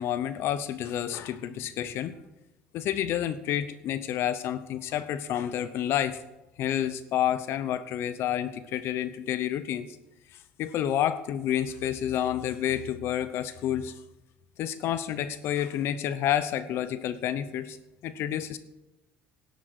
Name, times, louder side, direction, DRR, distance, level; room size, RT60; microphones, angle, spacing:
voice 1, 0.0-2.2 2.7-6.2 6.6-10.0 10.3-13.9 14.6-17.8 18.0-18.6, left 10 dB, 60° left, 13 dB, 0.8 m, -29 dB
11.5 x 8.2 x 8.0 m, 0.99 s
supercardioid pair, 105°, 5 cm